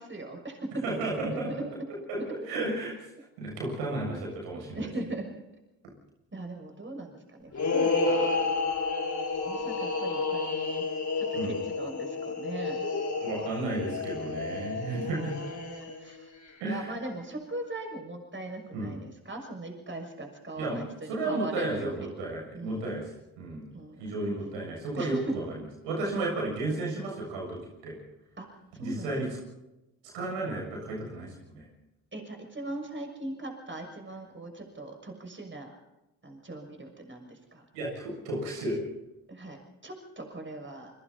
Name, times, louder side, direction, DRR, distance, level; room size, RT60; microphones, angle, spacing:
voice 1, 0.0-0.8 1.3-1.4 2.2-2.3 4.7-5.3 6.3-8.5 9.4-10.8 11.2-12.8 13.2-13.5 14.9-15.0 15.5-16.3 16.7-22.1 22.5-22.9 23.7-24.4 25.0-25.3 28.4-28.5 28.7-29.2 32.1-35.7 36.2-37.6 39.3-40.9, right 2 dB, 25° right, 3 dB, 6.4 m, -39 dB
voice 2, 0.8-1.7 2.1-2.2 2.4-2.9 3.4-4.9 11.4-11.5 13.2-15.4 16.6-16.9 18.7-19.0 20.6-20.8 21.1-23.1 23.4-23.7 24.0-28.0 28.8-29.3 30.1-31.7 37.7-38.8, right 2 dB, 80° right, -1 dB, 7.3 m, -33 dB
sound 1, 7.5-16.1, left 3 dB, 40° left, 5.2 m, -30 dB
28.5 x 23.0 x 4.2 m, 0.96 s
hypercardioid pair, 45°, 43 cm